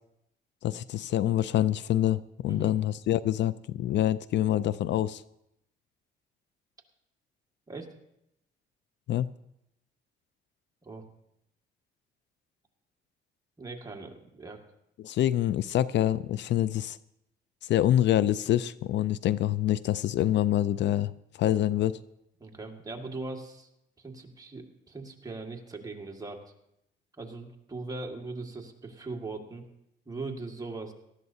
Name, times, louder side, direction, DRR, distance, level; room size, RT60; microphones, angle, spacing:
voice 1, 0.6-5.2 9.1-9.3 15.0-17.0 17.6-21.1 21.4-22.0, left 12 dB, 65° left, 18 dB, 0.4 m, -26 dB
voice 2, 13.6-14.6 22.4-23.7 24.0-26.4 27.2-29.7 30.1-30.9, right 3 dB, 20° right, 2 dB, 1.9 m, -40 dB
18.5 x 13.5 x 2.8 m, 0.82 s
cardioid pair, 90°, 20 cm